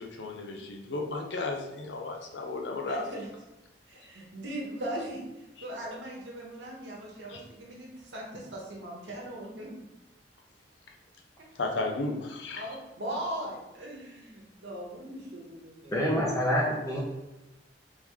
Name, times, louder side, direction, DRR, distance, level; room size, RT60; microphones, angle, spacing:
voice 1, 0.0-3.0 7.3-7.4 11.5-12.7, left 2 dB, 75° left, 2 dB, 0.6 m, -34 dB
voice 2, 2.8-3.3 3.9-9.7 12.5-16.1, right 1 dB, 85° right, -3 dB, 1.1 m, -39 dB
voice 3, 15.9-17.0, equal, 20° left, -5 dB, 0.7 m, -26 dB
3.6 x 3.6 x 3.0 m, 0.98 s
head